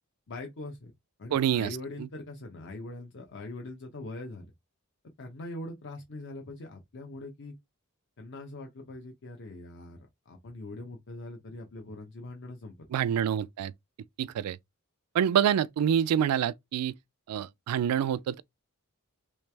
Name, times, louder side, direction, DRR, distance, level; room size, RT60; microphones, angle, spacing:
voice 1, 0.3-0.9 1.2-4.5 5.2-7.5 8.2-10.0 10.3-12.7, left 2 dB, 55° left, 0.7 m, -42 dB
voice 2, 1.3-2.1 12.9-13.7 14.2-14.6 15.1-16.9 17.3-18.4, right 9 dB, 85° right, 0.3 m, -27 dB
3.2 x 3.1 x 3.3 m
head